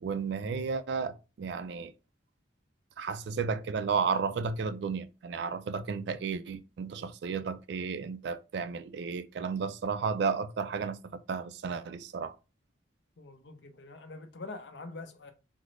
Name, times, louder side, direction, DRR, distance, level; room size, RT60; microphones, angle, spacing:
voice 1, 0.0-1.9 3.0-12.3, right 5 dB, 60° right, 0.3 m, -33 dB
voice 2, 13.2-15.3, left 3 dB, 65° left, 0.6 m, -44 dB
3.7 x 2.0 x 3.1 m
head